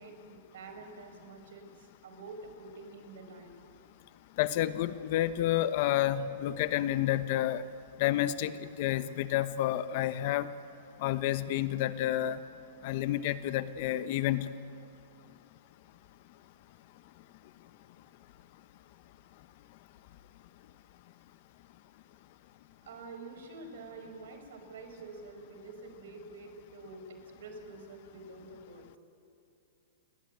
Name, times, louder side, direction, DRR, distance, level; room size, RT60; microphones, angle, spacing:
voice 1, 0.0-3.6 22.9-28.9, right 3 dB, 75° right, 6 dB, 5.2 m, -47 dB
voice 2, 4.4-7.6 8.0-10.5 11.0-12.4 12.8-14.5, left 13 dB, 45° left, 13 dB, 1.1 m, -30 dB
29.5 x 21.0 x 9.4 m, 2.6 s
hypercardioid pair, 155°, 0 cm